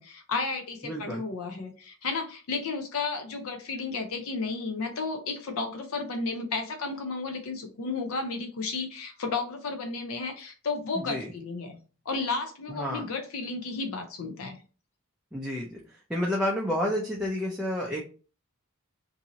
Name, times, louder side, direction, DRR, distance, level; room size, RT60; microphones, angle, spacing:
voice 1, 0.0-11.8 12.1-14.6, left 4 dB, 85° left, 5 dB, 0.5 m, -33 dB
voice 2, 0.8-1.2 11.0-11.3 12.7-13.0 15.3-15.8 16.1-18.0, left 1 dB, 5° right, -3 dB, 0.4 m, -30 dB
2.7 x 2.6 x 2.8 m, 0.37 s
head